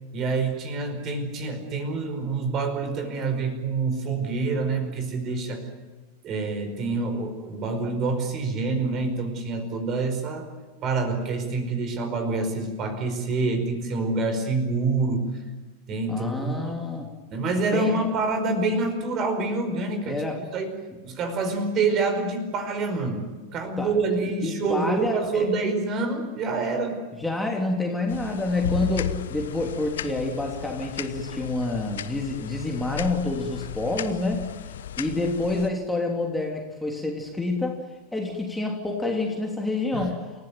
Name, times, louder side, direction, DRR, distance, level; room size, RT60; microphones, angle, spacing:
voice 1, 0.1-5.6 6.2-10.5 10.8-15.3 15.9-16.8 17.3-20.2 20.5-20.7 21.0-27.0 39.9-40.1, right 3 dB, 35° right, 7 dB, 5.0 m, -27 dB
voice 2, 16.1-17.1 17.7-18.0 20.1-20.4 23.8-24.0 24.4-25.5 27.2-34.5 35.0-37.8 38.1-40.2, left 2 dB, 5° left, 1 dB, 3.2 m, -28 dB
sound 1, 28.1-35.7, left 10 dB, 60° left, 1.0 m, -35 dB
29.0 x 15.5 x 9.4 m, 1.3 s
figure-of-eight pair, 90°, 0 cm